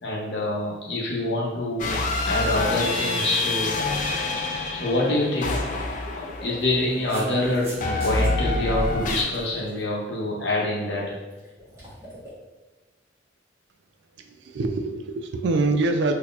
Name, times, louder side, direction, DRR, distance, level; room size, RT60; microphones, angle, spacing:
voice 1, 0.0-2.0 2.2-3.9 4.7-5.6 6.1-11.2, left 1 dB, 65° left, -3 dB, 0.8 m, -26 dB
sound 1, 1.8-6.9 7.8-9.2, left 2 dB, 45° left, 0.4 m, -27 dB
sound 2, 5.2-5.3 6.4-8.3, right 1 dB, 35° right, 1.2 m, -41 dB
Water / Liquid, 5.4-7.7 8.8-9.8 11.3-12.3, equal, 15° right, 1.3 m, -43 dB
voice 2, 14.1-16.1, right 3 dB, 60° right, 6 dB, 0.3 m, -25 dB
3.8 x 2.8 x 2.4 m, 1.2 s
head